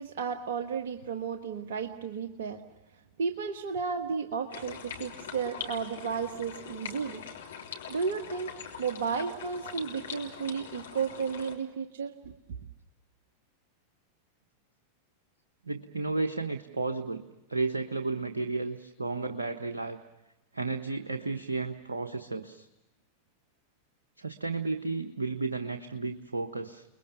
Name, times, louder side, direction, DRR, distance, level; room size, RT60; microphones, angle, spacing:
voice 1, 0.0-2.6 3.2-7.2 7.9-8.5 8.8-12.3, right 6 dB, 60° right, 6 dB, 1.4 m, -33 dB
sound 1, 4.5-11.6, left 7 dB, 65° left, 3.4 m, -42 dB
voice 2, 15.6-17.2 17.5-20.0 20.5-22.7 24.2-26.8, right 3 dB, 75° right, 5 dB, 1.2 m, -33 dB
30.0 x 21.0 x 7.0 m, 0.97 s
figure-of-eight pair, 90°, 0 cm